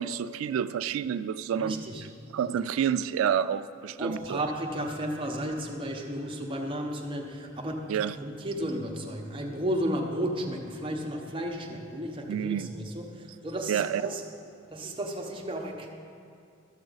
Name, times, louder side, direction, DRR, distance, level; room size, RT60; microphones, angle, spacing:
voice 1, 0.0-1.7 2.3-4.4 7.9-8.1 12.3-12.7 13.7-14.0, right 8 dB, 85° right, 13 dB, 0.3 m, -29 dB
voice 2, 1.5-2.0 4.0-14.2 14.7-15.9, equal, 25° right, 0 dB, 0.9 m, -33 dB
12.5 x 6.9 x 4.0 m, 2.4 s
head